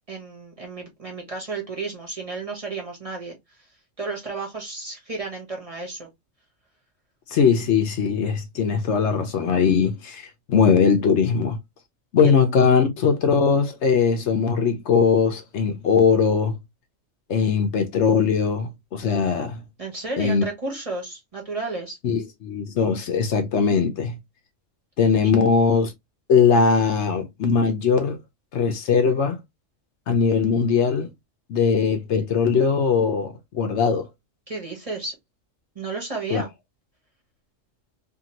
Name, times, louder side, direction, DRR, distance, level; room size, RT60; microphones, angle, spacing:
voice 1, 0.1-3.6 4.0-6.1 12.2-12.4 19.8-22.0 34.5-35.1 35.7-36.5, right 3 dB, 30° right, 1.0 m, -32 dB
voice 2, 7.3-11.6 12.1-16.6 17.3-19.6 20.2-20.4 22.0-24.2 25.0-25.9 26.3-28.2 28.5-29.4 30.1-31.1 31.5-34.1 36.3-36.4, left 6 dB, 70° left, 0.9 m, -20 dB
2.8 x 2.6 x 2.9 m
omnidirectional pair, 1.3 m